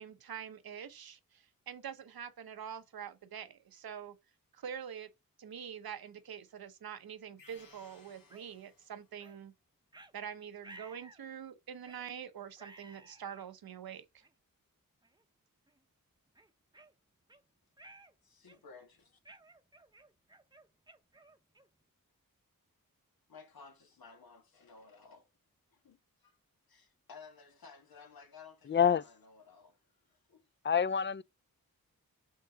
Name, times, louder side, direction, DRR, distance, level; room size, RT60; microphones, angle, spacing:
voice 1, 0.0-4.2 4.5-5.1 5.4-9.5 10.1-14.2, right 8 dB, 90° right, 0.9 m, -45 dB
sound 1, 7.4-9.3, left 4 dB, 70° left, 1.7 m, -61 dB
sound 2, 8.3-8.5 9.2-9.4 9.9-10.1 10.6-11.2 11.8-12.1 12.6-13.5 14.2-14.3 15.0-15.2 15.7-15.8 16.4-17.4 17.8-18.1 18.5-18.8 19.3-21.8, right 2 dB, 10° right, 0.7 m, -56 dB
voice 2, 18.4-19.2 23.3-25.3 25.7-26.4 26.7-29.8 30.0-30.4, left 5 dB, 85° left, 1.5 m, -55 dB
voice 3, 28.7-29.0 30.6-31.2, left 7 dB, 35° left, 0.4 m, -27 dB
5.6 x 3.8 x 5.6 m
wide cardioid pair, 80°, 35 cm